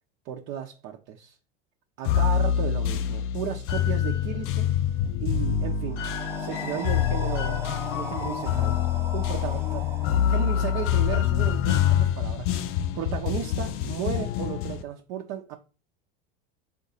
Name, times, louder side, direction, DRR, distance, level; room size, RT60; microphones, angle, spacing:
voice 1, 0.2-1.4 2.0-4.7 5.2-6.0 6.4-7.7 7.9-8.8 9.1-9.9 10.2-15.6, right 9 dB, 55° right, 0.7 m, -34 dB
sound 1, 2.1-14.8, left 10 dB, 50° left, 0.5 m, -26 dB
sound 2, 5.9-11.8, right 1 dB, 10° right, 0.6 m, -39 dB
3.8 x 2.6 x 4.1 m
hypercardioid pair, 95°, 29 cm